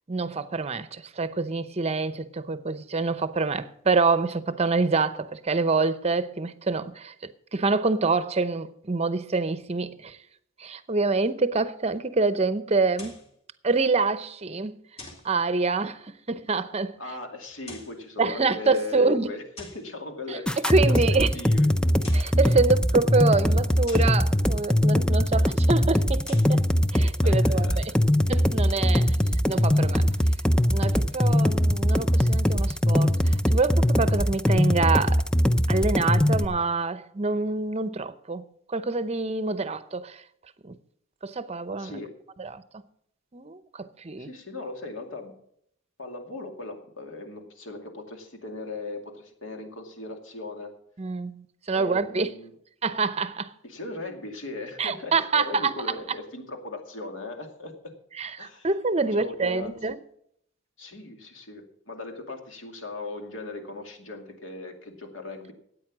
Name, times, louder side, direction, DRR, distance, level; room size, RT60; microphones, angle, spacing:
voice 1, 0.1-10.2 10.6-13.2 13.6-14.8 15.2-17.0 18.2-19.3 20.3-20.4 20.7-21.3 22.1-26.6 26.9-27.7 28.3-29.2 29.5-30.1 30.7-35.2 35.7-40.2 40.6-40.7 41.2-42.0 42.4-42.6 43.3-44.3 51.0-52.3 52.8-53.5 54.8-55.7 58.2-60.0, right 3 dB, 30° right, 0.7 m, -26 dB
sound 1, 12.9-13.3 15.0-15.3 17.5-18.0 19.6-19.9 21.8-22.4 23.9-24.2 26.1-26.6, left 2 dB, 30° left, 2.6 m, -45 dB
voice 2, 17.0-21.7 27.2-27.9 41.8-42.1 44.2-45.3 46.0-50.7 51.7-52.5 53.6-57.9 58.4-58.7 59.1-59.8 60.8-65.5, left 2 dB, 70° left, 2.4 m, -38 dB
sound 2, 20.5-36.5, equal, 5° left, 0.5 m, -21 dB
13.5 x 9.2 x 6.1 m
head